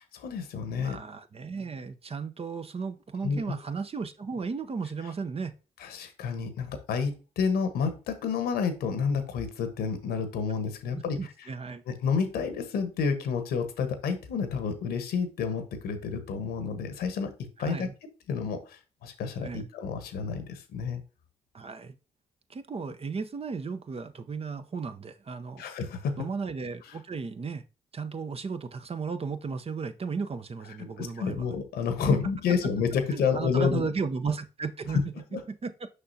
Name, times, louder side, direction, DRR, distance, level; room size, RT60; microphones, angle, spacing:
voice 1, 0.2-1.0 3.2-3.6 5.8-11.2 11.9-17.3 17.6-17.9 18.3-21.0 25.6-26.2 30.8-33.9 34.9-35.0 35.3-35.4, left 6 dB, 70° left, 1.1 m, -29 dB
voice 2, 0.8-5.5 10.9-11.8 17.6-17.9 19.4-19.7 21.5-22.0 22.5-25.7 26.2-27.6 27.9-31.5 32.1-32.2 33.1-35.0 35.5-35.7, right 5 dB, 35° right, 0.7 m, -35 dB
6.6 x 5.5 x 2.7 m
hypercardioid pair, 40°, 17 cm